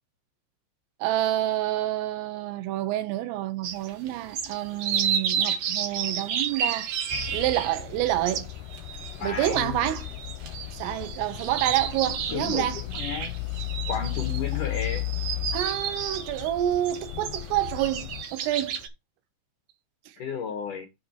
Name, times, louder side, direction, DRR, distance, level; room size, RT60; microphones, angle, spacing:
voice 1, 1.0-6.9 7.3-8.5 9.2-10.1 10.8-12.8 15.5-18.8, right 13 dB, 90° right, 3.7 m, -28 dB
sound 1, 3.6-18.9, right 8 dB, 65° right, 2.4 m, -32 dB
sound 2, 7.1-18.2, left 20 dB, 85° left, 3.0 m, -35 dB
voice 2, 9.2-9.9 12.3-12.7 12.9-13.3 13.9-15.1 20.2-20.9, left 6 dB, 65° left, 2.1 m, -32 dB
8.0 x 6.0 x 4.6 m
omnidirectional pair, 5.7 m